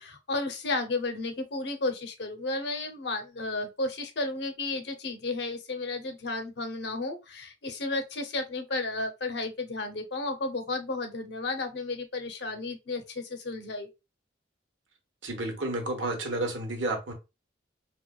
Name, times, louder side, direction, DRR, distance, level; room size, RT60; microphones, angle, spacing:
voice 1, 0.0-13.9, left 2 dB, 60° left, 0.7 m, -33 dB
voice 2, 15.2-17.1, right 2 dB, 85° right, 1.1 m, -31 dB
4.7 x 2.2 x 2.3 m
head